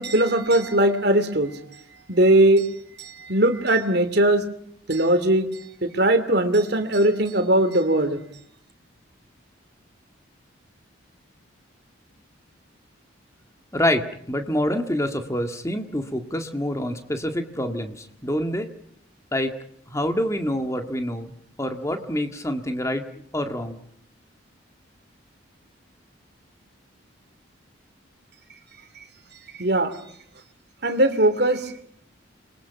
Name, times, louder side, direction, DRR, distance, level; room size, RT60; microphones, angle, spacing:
voice 1, 0.0-1.6 2.1-2.7 3.0-4.5 4.9-5.5 5.8-8.2 29.0-29.1 29.6-29.9 30.8-31.8, right 1 dB, 55° right, 9 dB, 2.7 m, -20 dB
voice 2, 13.7-18.7 19.3-19.5 19.9-21.3 21.6-23.1 23.3-23.8, left 1 dB, 15° left, 6 dB, 2.0 m, -26 dB
28.5 x 22.5 x 5.9 m, 0.66 s
head